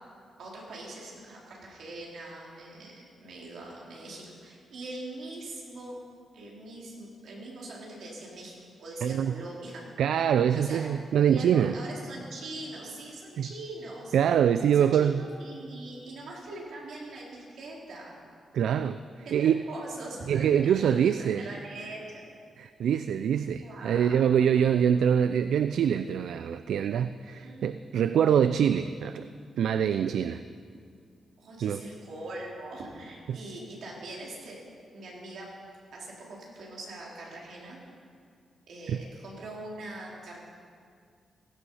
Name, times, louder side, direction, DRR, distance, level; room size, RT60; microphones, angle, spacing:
voice 1, 0.4-6.0 6.3-8.5 8.8-9.8 10.1-10.9 11.2-14.2 14.7-18.2 19.3-22.2 23.6-24.5 27.4-27.8 31.4-34.6 34.9-35.5 35.9-37.8 38.7-40.4, right 2 dB, 65° right, -3 dB, 3.9 m, -42 dB
voice 2, 9.0-9.3 10.0-11.7 13.4-13.5 14.1-15.2 18.5-19.0 19.3-19.6 20.3-21.4 22.6-29.3 29.6-30.4 31.6-31.8 33.3-33.4 38.9-39.0, right 8 dB, 85° right, 11 dB, 0.4 m, -24 dB
16.5 x 15.5 x 5.6 m, 2.2 s
wide cardioid pair, 175°, 0 cm